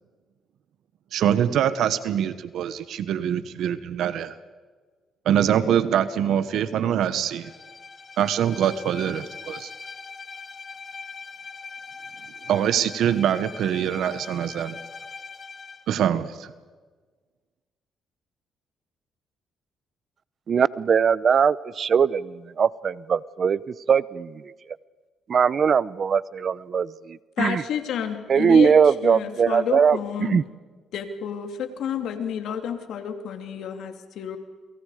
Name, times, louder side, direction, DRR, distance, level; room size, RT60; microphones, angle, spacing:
voice 1, 1.1-4.3 5.2-7.5 8.2-9.7 12.5-14.8 15.9-16.5, right 9 dB, 75° right, 13 dB, 1.2 m, -24 dB
Bowed string instrument, 7.2-15.9, left 4 dB, 35° left, 1.7 m, -41 dB
voice 2, 20.5-23.6 23.9-24.3 25.3-27.6 28.3-30.4, right 6 dB, 50° right, 19 dB, 0.7 m, -21 dB
voice 3, 27.4-30.4 30.9-34.4, left 8 dB, 75° left, 7 dB, 2.8 m, -30 dB
30.0 x 24.0 x 5.0 m, 1.4 s
cardioid pair, 90°, 0 cm